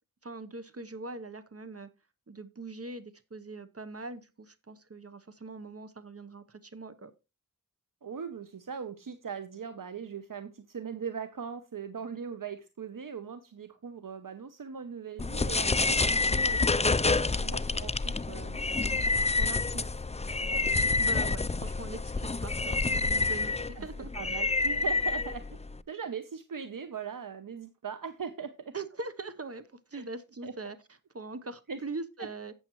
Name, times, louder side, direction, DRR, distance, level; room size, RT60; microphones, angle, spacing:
voice 1, 0.2-1.9 2.3-7.1 21.0-24.5 28.7-30.8 31.1-32.5, right 3 dB, 45° right, 0.9 m, -42 dB
voice 2, 8.0-19.9 23.7-23.9 24.1-25.6 25.9-28.7 29.9-30.0 30.4-30.5 31.7-31.8, right 6 dB, 70° right, 0.9 m, -40 dB
sound 1, 15.2-25.8, left 3 dB, 20° left, 0.5 m, -28 dB
12.0 x 8.6 x 3.1 m
wide cardioid pair, 65°, 34 cm